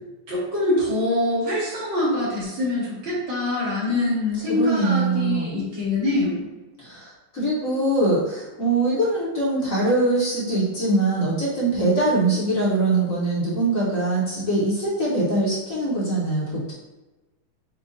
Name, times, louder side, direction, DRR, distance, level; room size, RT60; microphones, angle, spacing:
voice 1, 0.0-6.5, left 2 dB, 75° right, -8 dB, 2.6 m, -24 dB
voice 2, 4.5-5.5 6.8-16.7, right 2 dB, 50° left, -7 dB, 1.3 m, -23 dB
7.2 x 2.4 x 2.6 m, 1.1 s
omnidirectional pair, 2.2 m